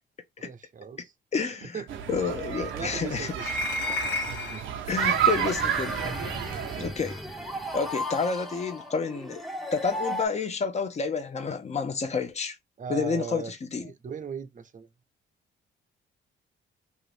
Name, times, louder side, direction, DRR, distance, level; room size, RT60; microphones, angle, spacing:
voice 1, 0.4-1.1 1.4-2.0 2.7-3.5 4.2-4.7 12.8-14.9, right 6 dB, 40° right, 0.6 m, -39 dB
voice 2, 1.3-1.8 2.1-3.3 4.9-6.0 6.8-7.2 7.7-9.4 9.7-12.6 12.9-13.4 13.7-13.9, left 5 dB, 35° left, 0.7 m, -29 dB
sound 1, 1.9-6.9, right 9 dB, 75° right, 0.7 m, -30 dB
sound 2, 3.4-4.7 6.0-6.1 7.1-7.2, left 2 dB, 70° left, 1.2 m, -31 dB
sound 3, 5.0-10.3, equal, ahead, 0.7 m, -35 dB
2.8 x 2.5 x 3.3 m
cardioid pair, 90°, 20 cm